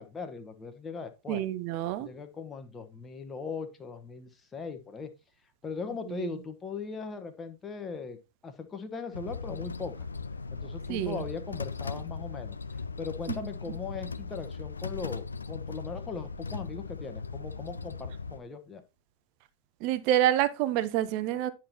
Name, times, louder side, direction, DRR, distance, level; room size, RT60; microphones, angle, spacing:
voice 1, 0.0-1.4 2.0-5.1 5.6-8.2 8.4-10.1 10.5-12.6 13.0-18.8, left 5 dB, 20° left, 1.1 m, -39 dB
voice 2, 1.3-2.1 6.1-6.3 10.9-11.2 19.8-21.5, right 12 dB, 45° right, 0.8 m, -27 dB
sound 1, 9.1-18.4, left 4 dB, 75° left, 0.4 m, -38 dB
10.0 x 6.0 x 2.9 m
figure-of-eight pair, 90°, 0 cm